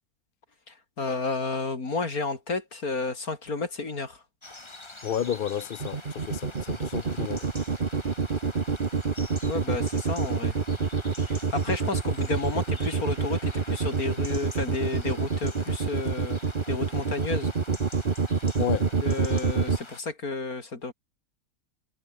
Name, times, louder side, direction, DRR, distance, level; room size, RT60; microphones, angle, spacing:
voice 1, 0.7-4.2 9.5-10.6 11.3-16.4 16.7-17.5 19.0-20.9, left 3 dB, 80° left, 4.0 m, -31 dB
sound 1, 4.4-20.0, left 2 dB, 20° left, 1.8 m, -45 dB
voice 2, 5.0-7.5 18.6-18.9, left 9 dB, 50° left, 0.7 m, -31 dB
sound 2, 5.8-19.8, right 5 dB, 35° right, 1.4 m, -26 dB
omnidirectional pair, 1.5 m